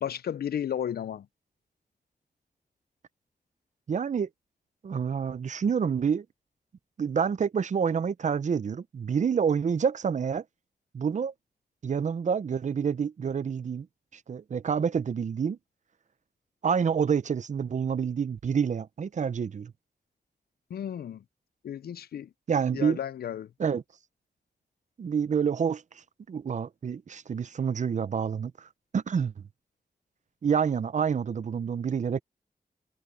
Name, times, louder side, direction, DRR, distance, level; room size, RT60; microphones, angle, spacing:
voice 1, 0.0-1.3 20.7-21.2 21.6-22.3 22.7-23.5, left 9 dB, 90° left, 0.4 m, -33 dB
voice 2, 3.9-4.3 4.8-6.3 7.0-10.4 10.9-11.3 11.8-13.9 14.1-15.6 16.6-19.7 22.5-23.0 23.6-23.8 25.0-25.8 26.3-28.5 28.9-29.3 30.4-32.2, right 6 dB, 50° right, 0.5 m, -28 dB
wide cardioid pair, 120°, 16 cm